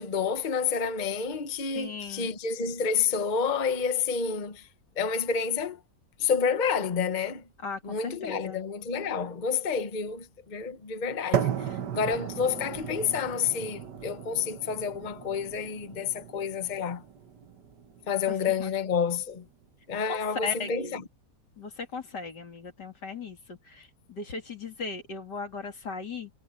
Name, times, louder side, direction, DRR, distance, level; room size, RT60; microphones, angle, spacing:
voice 1, 0.0-4.7 5.0-5.8 6.2-7.4 7.8-17.0 18.1-19.5 19.9-21.0, left 6 dB, 30° left, 1.1 m, -29 dB
voice 2, 1.7-2.3 7.6-8.6 18.6-18.7 20.1-21.0 21.6-26.3, left 4 dB, 80° left, 3.6 m, -38 dB
sound 1, 11.3-19.4, right 9 dB, 85° right, 1.8 m, -36 dB
omnidirectional pair, 1.8 m